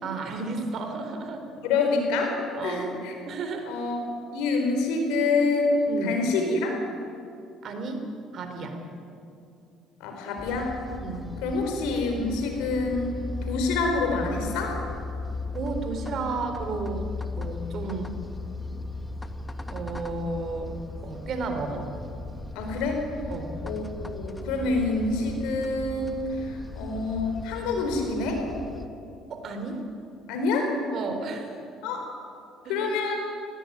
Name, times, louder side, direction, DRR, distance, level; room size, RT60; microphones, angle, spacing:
voice 1, 0.0-1.4 2.6-3.7 5.9-6.2 7.6-8.0 8.3-8.8 11.0-11.3 15.5-17.1 17.4-18.1 19.7-20.7 21.0-21.9 23.3-23.5 29.3-29.8 30.9-31.5 32.6-32.8, right 3 dB, 55° right, 5 dB, 3.8 m, -33 dB
voice 2, 1.6-2.4 2.6-3.1 3.7-4.0 4.3-5.8 6.0-6.7 10.0-10.8 11.4-13.1 13.4-14.8 22.5-23.0 23.6-28.4 30.3-30.7 31.8-32.1 32.7-33.3, left 3 dB, 85° left, 3 dB, 4.6 m, -27 dB
sound 1, 10.4-28.9, left 3 dB, 15° left, 1.5 m, -37 dB
18.5 x 17.5 x 9.8 m, 2.5 s
supercardioid pair, 85°, 0 cm